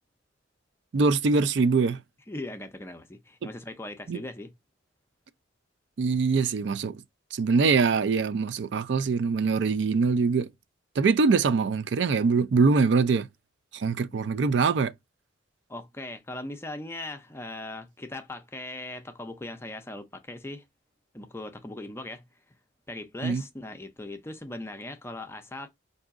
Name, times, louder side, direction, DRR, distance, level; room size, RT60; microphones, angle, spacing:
voice 1, 0.9-2.0 4.1-4.2 6.0-7.0 7.3-10.5 11.0-13.3 13.7-14.9 23.2-23.4, right 4 dB, 60° right, 0.4 m, -23 dB
voice 2, 2.3-4.5 14.1-14.3 15.7-20.6 21.1-22.3 22.9-25.7, left 2 dB, 15° left, 0.5 m, -39 dB
4.9 x 2.7 x 2.4 m
head